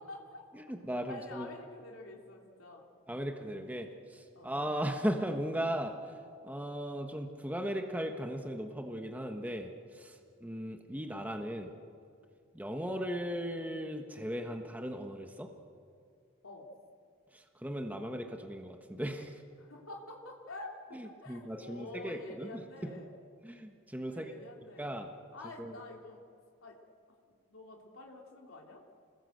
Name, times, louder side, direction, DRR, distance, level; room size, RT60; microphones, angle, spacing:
voice 1, 0.0-0.4 1.1-2.8 4.3-4.6 16.4-16.7 19.6-23.2 24.1-24.9 25.3-26.2 26.6-26.8 27.5-28.8, left 2 dB, 85° left, -1 dB, 3.2 m, -48 dB
voice 2, 0.5-1.5 3.1-5.9 6.4-11.7 12.5-15.5 17.3-19.4 20.9-22.5 22.8-22.9 23.4-24.3 24.8-25.1 25.6-25.8, equal, 5° right, 4 dB, 1.3 m, -37 dB
27.5 x 20.5 x 8.0 m, 2.4 s
head